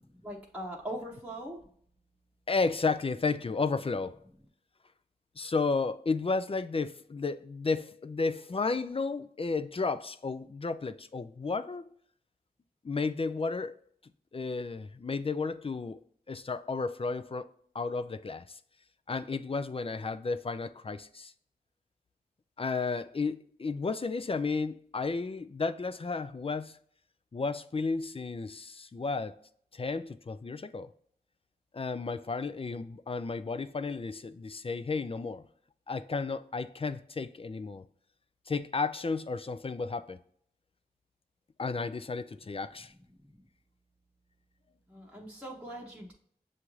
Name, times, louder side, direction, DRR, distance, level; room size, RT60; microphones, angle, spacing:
voice 1, 0.2-1.6 43.2-43.4 44.9-46.1, right 1 dB, 10° right, 0.9 m, -41 dB
voice 2, 2.5-4.2 5.4-11.9 12.8-13.8 14.3-16.0 16.3-18.6 19.1-21.3 22.6-26.8 27.3-29.4 29.7-30.9 31.7-35.4 35.9-37.8 38.5-40.2 41.6-42.9, left 4 dB, 35° left, 0.4 m, -33 dB
6.8 x 2.5 x 3.0 m
wide cardioid pair, 45°, 16 cm